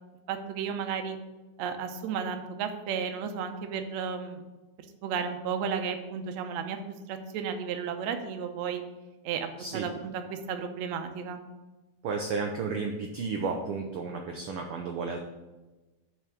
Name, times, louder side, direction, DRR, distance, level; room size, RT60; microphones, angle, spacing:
voice 1, 0.3-1.2 1.6-4.4 5.0-6.8 7.1-8.8 9.2-11.4, right 7 dB, 70° right, 6 dB, 1.8 m, -33 dB
voice 2, 12.0-15.2, right 4 dB, 90° right, 3 dB, 1.2 m, -32 dB
7.6 x 4.8 x 6.8 m, 1.1 s
omnidirectional pair, 3.5 m